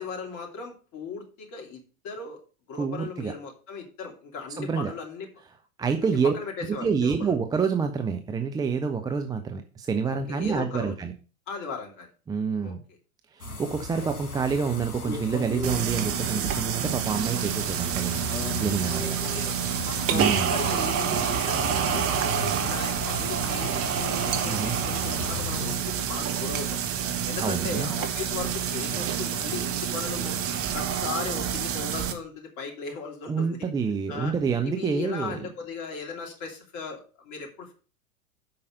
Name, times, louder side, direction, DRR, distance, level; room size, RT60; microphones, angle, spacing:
voice 1, 0.0-2.4 2.7-5.3 6.0-7.3 10.3-10.9 11.5-12.1 12.6-12.7 14.0-14.1 19.0-19.9 20.4-26.8 27.2-30.3 30.7-33.6 34.1-34.3 34.6-37.7, left 5 dB, 40° left, 2 dB, 2.9 m, -37 dB
voice 2, 2.8-3.3 4.6-4.9 5.8-6.3 6.8-11.1 12.3-12.8 13.3-18.3 18.6-19.2 20.1-20.6 24.4-24.7 27.4-27.9 33.3-35.5, right 5 dB, 10° right, 7 dB, 0.5 m, -27 dB
sound 1, 13.4-25.8, left 2 dB, 85° left, 2.3 m, -36 dB
sound 2, 15.6-32.1, right 8 dB, 30° right, 1.4 m, -28 dB
7.9 x 5.6 x 6.4 m, 0.38 s
figure-of-eight pair, 90°, 43 cm